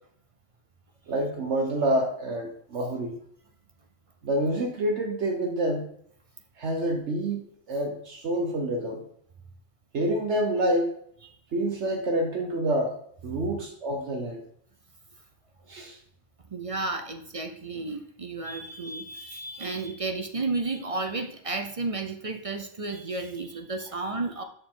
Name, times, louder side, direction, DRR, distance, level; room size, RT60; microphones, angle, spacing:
voice 1, 1.1-3.2 4.2-5.9 6.6-9.0 9.9-10.9 11.5-13.0 13.2-14.4 15.7-16.0, right 1 dB, 65° right, 2 dB, 1.3 m, -27 dB
voice 2, 16.5-24.4, right 3 dB, 35° right, 6 dB, 0.6 m, -32 dB
6.9 x 6.7 x 3.7 m, 0.67 s
omnidirectional pair, 1.3 m